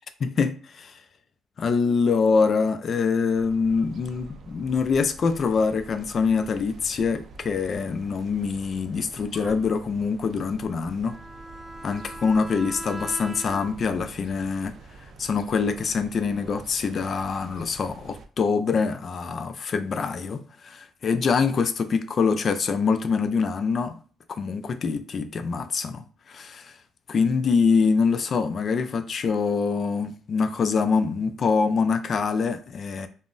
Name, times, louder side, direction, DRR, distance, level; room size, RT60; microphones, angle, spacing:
voice 1, 0.2-1.0 1.6-11.2 11.8-14.7 15.0-24.0 24.3-26.8 27.1-33.1, left 5 dB, 50° left, 0.3 m, -25 dB
sound 1, 3.3-18.3, right 3 dB, 60° right, 0.4 m, -46 dB
Bowed string instrument, 11.0-14.0, right 1 dB, 5° right, 0.5 m, -39 dB
2.1 x 2.0 x 3.7 m
cardioid pair, 90°, 0 cm